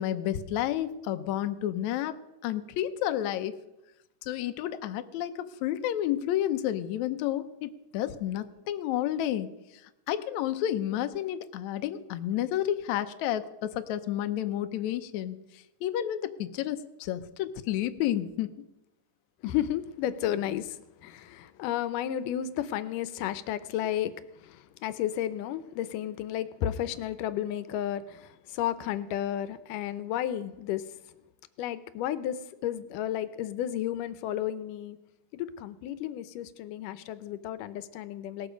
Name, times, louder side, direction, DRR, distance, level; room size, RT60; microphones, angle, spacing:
voice 1, 0.0-2.2 2.4-3.5 4.2-9.5 10.1-18.5, left 12 dB, 70° left, 9 dB, 2.0 m, -31 dB
voice 2, 19.4-31.0 31.6-35.0 35.3-38.5, left 11 dB, 90° left, 13 dB, 2.3 m, -33 dB
18.0 x 13.5 x 5.1 m, 0.94 s
omnidirectional pair, 3.7 m